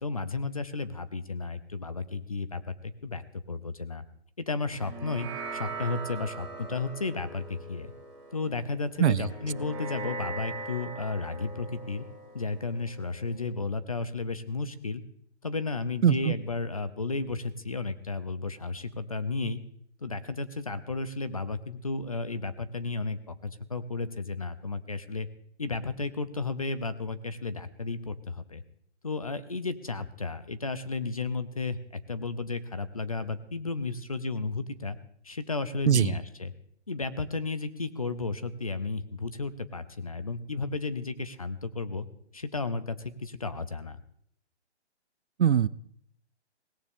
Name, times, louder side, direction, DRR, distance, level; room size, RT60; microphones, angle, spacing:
voice 1, 0.0-4.0 4.4-7.9 8.3-12.0 12.3-15.0 15.4-19.6 20.0-25.3 25.6-28.6 29.0-31.8 32.1-35.0 35.2-36.5 36.9-42.1 42.3-44.0, left 3 dB, 30° left, 14 dB, 0.6 m, -33 dB
sound 1, 4.7-13.4, right 3 dB, 5° right, 4.4 m, -41 dB
voice 2, 16.0-16.3 35.9-36.1 45.4-45.7, right 9 dB, 75° right, 20 dB, 0.6 m, -21 dB
17.5 x 16.0 x 3.6 m, 0.67 s
hypercardioid pair, 175°, 34 cm